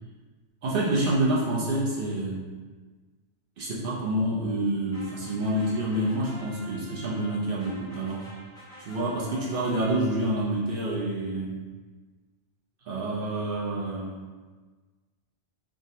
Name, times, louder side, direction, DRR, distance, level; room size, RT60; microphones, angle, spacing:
voice 1, 0.6-2.5 3.6-8.3 8.8-11.6 12.8-14.2, right 1 dB, 60° right, -5 dB, 0.6 m, -28 dB
sound 1, 4.9-10.4, equal, 5° left, 0.5 m, -48 dB
3.4 x 2.0 x 2.7 m, 1.4 s
omnidirectional pair, 1.2 m